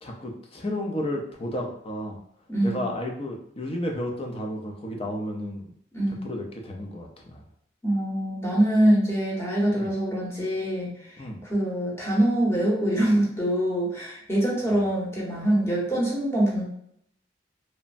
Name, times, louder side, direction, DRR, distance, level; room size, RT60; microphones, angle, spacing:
voice 1, 0.0-2.2 2.6-5.7 6.2-7.4 9.7-9.9 11.2-11.4, left 1 dB, 30° left, 1 dB, 0.5 m, -32 dB
voice 2, 2.5-2.9 5.9-6.3 7.8-16.6, right 1 dB, 15° left, -5 dB, 0.8 m, -24 dB
3.1 x 2.0 x 2.5 m, 0.68 s
head